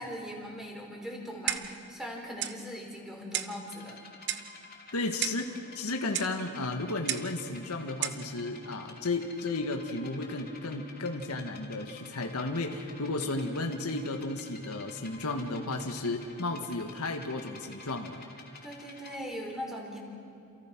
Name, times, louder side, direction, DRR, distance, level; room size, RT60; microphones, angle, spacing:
voice 1, 0.0-4.0 18.6-20.0, equal, ahead, -1 dB, 4.7 m, -40 dB
Clock, 1.5-1.8 2.4-2.6 3.3-3.6 4.3-4.5 5.2-5.5 6.1-6.4 7.1-7.3 8.0-8.2, right 10 dB, 50° right, 1.1 m, -33 dB
sound 1, 3.6-19.2, left 4 dB, 40° left, 3.8 m, -51 dB
voice 2, 4.9-18.2, left 2 dB, 80° left, 4 dB, 1.8 m, -33 dB
28.5 x 28.0 x 6.2 m, 2.5 s
head